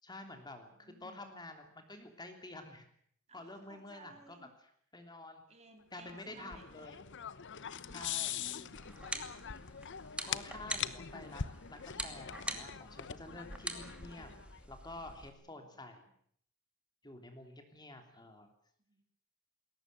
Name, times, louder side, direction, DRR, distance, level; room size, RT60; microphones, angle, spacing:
voice 1, 0.0-2.9 3.3-5.4 5.9-7.0 7.9-8.4 10.3-14.3 14.7-16.1 17.0-18.5, left 2 dB, 20° left, 6 dB, 3.1 m, -50 dB
voice 2, 0.7-1.2 3.3-4.5 5.5-6.7 7.7-8.8 15.1-15.8 18.8-19.0, right 2 dB, 30° right, 5 dB, 3.7 m, -59 dB
sound 1, 6.0-14.6, left 8 dB, 60° left, 0.9 m, -43 dB
sound 2, 8.8-15.3, right 1 dB, 5° right, 2.6 m, -45 dB
21.0 x 18.0 x 9.2 m, 0.66 s
head